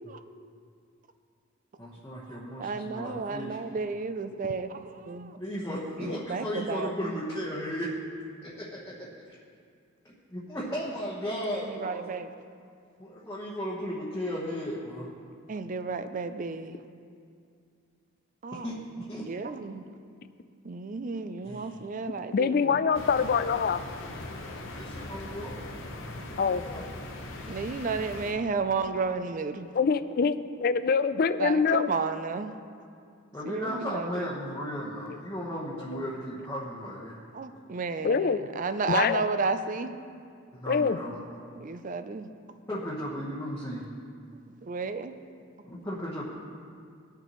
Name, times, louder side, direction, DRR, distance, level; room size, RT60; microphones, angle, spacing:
voice 1, 1.8-3.6 5.4-8.0 8.4-9.4 10.0-12.1 13.0-15.1 18.6-19.3 21.4-21.8 22.7-22.8 24.6-26.9 28.4-28.5 33.3-37.2 40.5-41.2 42.7-43.9 45.6-46.2, equal, 15° left, -7 dB, 1.1 m, -36 dB
voice 2, 2.3-5.4 6.0-6.9 11.5-12.3 15.5-16.8 18.4-18.7 19.3-19.9 20.6-22.8 27.5-29.7 31.4-32.6 33.4-34.3 37.3-40.0 41.6-42.3 44.3-45.1, right 4 dB, 40° right, 10 dB, 0.4 m, -32 dB
voice 3, 22.3-23.8 26.4-26.6 29.7-31.9 38.0-38.4 38.9-39.2 40.7-41.0, left 5 dB, 45° left, 12 dB, 0.3 m, -24 dB
sound 1, 22.9-28.3, left 2 dB, 65° left, 1.1 m, -40 dB
19.5 x 6.7 x 3.1 m, 2.3 s
head